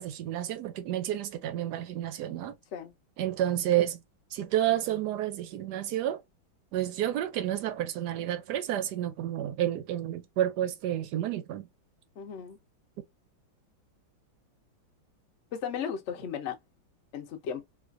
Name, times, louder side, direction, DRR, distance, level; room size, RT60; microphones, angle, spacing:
voice 1, 0.0-2.5 3.2-4.0 4.3-6.2 6.7-11.6, right 12 dB, 75° right, 1.0 m, -30 dB
voice 2, 12.2-12.6 15.5-16.6 17.1-17.6, left 7 dB, 75° left, 0.6 m, -35 dB
3.9 x 2.4 x 2.4 m
omnidirectional pair, 2.2 m